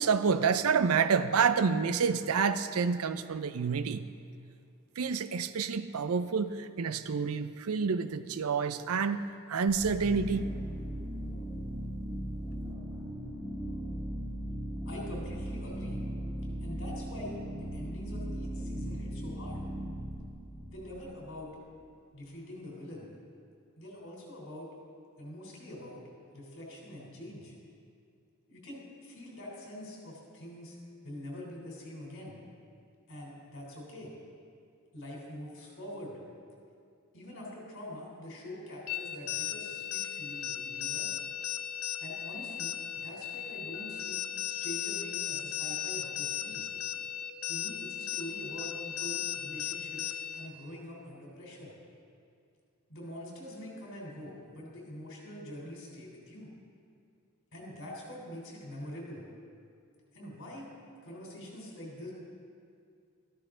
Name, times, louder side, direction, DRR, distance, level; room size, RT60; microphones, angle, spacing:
voice 1, 0.0-4.1 5.0-9.2 9.5-10.5, right 5 dB, 85° right, 12 dB, 0.5 m, -28 dB
sound 1, 9.7-21.4, equal, 5° right, 2.8 m, -38 dB
voice 2, 14.9-16.0 16.6-19.6 20.7-21.5 22.1-23.1 23.8-24.7 25.2-26.0 26.3-27.6 28.5-30.8 31.0-32.4 33.1-34.1 34.9-36.2 37.1-41.1 42.0-46.7 47.5-51.7 52.9-56.5 57.5-59.2 60.1-60.7 61.0-62.1, left 1 dB, 60° left, -2 dB, 3.5 m, -45 dB
sound 2, 38.9-50.5, left 10 dB, 90° left, 0.6 m, -36 dB
13.5 x 12.5 x 3.8 m, 2.4 s
head